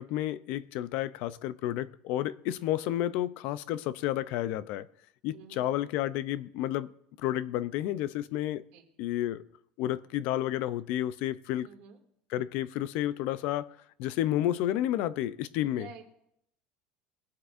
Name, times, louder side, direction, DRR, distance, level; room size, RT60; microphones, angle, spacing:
voice 1, 0.0-4.9 5.2-6.9 7.2-8.6 9.0-9.4 9.8-11.7 12.3-15.9, left 13 dB, 60° left, 0.5 m, -31 dB
voice 2, 5.3-5.7 8.7-8.8 11.6-12.0 15.7-16.0, right 7 dB, 65° right, 2.4 m, -49 dB
21.5 x 8.1 x 2.6 m
cardioid pair, 155°, 3 cm